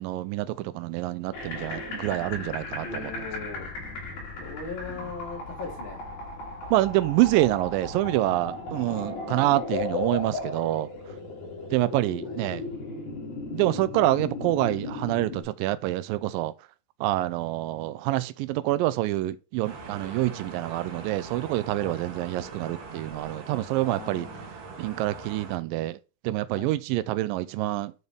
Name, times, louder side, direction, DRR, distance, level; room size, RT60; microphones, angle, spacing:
voice 1, 0.0-3.1 6.7-10.9 11.7-12.7 13.5-16.5 17.0-24.3 24.8-26.0 26.2-27.9, right 16 dB, 80° right, 2.1 m, -26 dB
sound 1, 1.3-15.4, left 3 dB, 75° left, 4.3 m, -36 dB
voice 2, 2.8-3.7 4.4-6.0 8.9-9.5 12.2-12.6 21.8-22.0 23.8-24.5 26.5-26.7, left 4 dB, 45° left, 1.8 m, -40 dB
sound 2, 19.6-25.6, right 4 dB, 60° right, 1.8 m, -42 dB
11.0 x 4.0 x 3.4 m
omnidirectional pair, 4.3 m